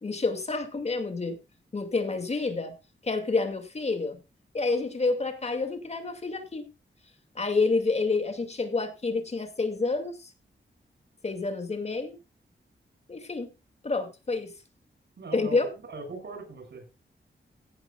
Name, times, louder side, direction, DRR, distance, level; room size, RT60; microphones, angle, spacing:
voice 1, 0.0-1.4 1.7-2.7 3.0-4.2 4.5-6.7 7.4-10.3 11.2-12.2 13.1-13.5 13.8-14.5 15.3-15.7, left 3 dB, 35° left, 2.3 m, -28 dB
voice 2, 15.2-16.9, right 3 dB, 65° right, 6.7 m, -40 dB
16.0 x 12.0 x 2.4 m
wide cardioid pair, 155°, 19 cm